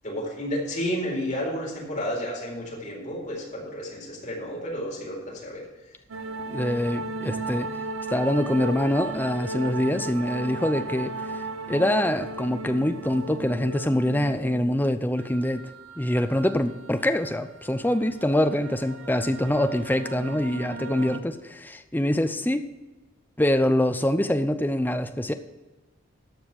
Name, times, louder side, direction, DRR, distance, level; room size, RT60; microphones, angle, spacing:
voice 1, 0.0-5.6, equal, 40° left, -3 dB, 4.2 m, -31 dB
Oboe tone & Orchestra Tunning (Classical Music), 6.1-21.2, right 2 dB, 90° right, 0.8 m, -36 dB
voice 2, 6.5-7.7 8.1-11.1 11.7-15.6 16.0-22.6 23.4-25.3, left 1 dB, 10° left, 9 dB, 0.6 m, -24 dB
13.5 x 5.0 x 7.2 m, 1.1 s
head